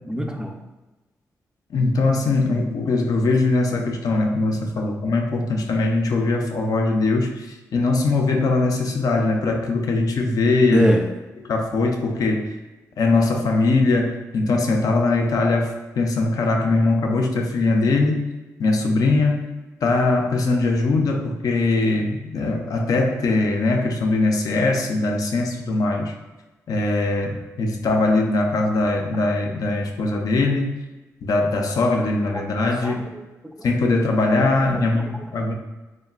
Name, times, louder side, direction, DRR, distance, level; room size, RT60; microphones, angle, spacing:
voice 1, 0.0-0.6 10.7-11.1 32.3-33.7 34.6-35.2, equal, 10° right, 4 dB, 0.3 m, -26 dB
voice 2, 1.7-10.9 11.5-12.5 13.0-18.3 18.6-26.1 26.7-30.8 31.2-33.1 33.6-35.5, left 2 dB, 65° left, 2 dB, 0.4 m, -21 dB
3.0 x 2.0 x 2.3 m, 1.1 s
cardioid pair, 60°, 7 cm